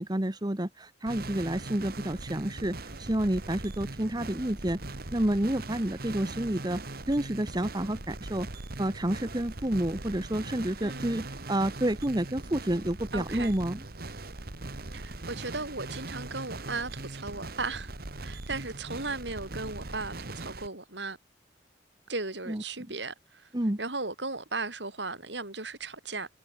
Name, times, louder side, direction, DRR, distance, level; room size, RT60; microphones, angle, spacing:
voice 1, 0.0-4.8 5.1-6.8 7.1-8.5 8.8-13.8 22.5-22.6 23.5-23.8, right 1 dB, 25° right, 1.3 m, -29 dB
sound 1, 1.1-20.7, right 2 dB, 55° right, 1.8 m, -40 dB
voice 2, 10.8-11.3 13.1-13.5 14.9-17.9 18.2-21.2 22.1-23.5 23.8-26.3, right 3 dB, 75° right, 6.0 m, -36 dB
head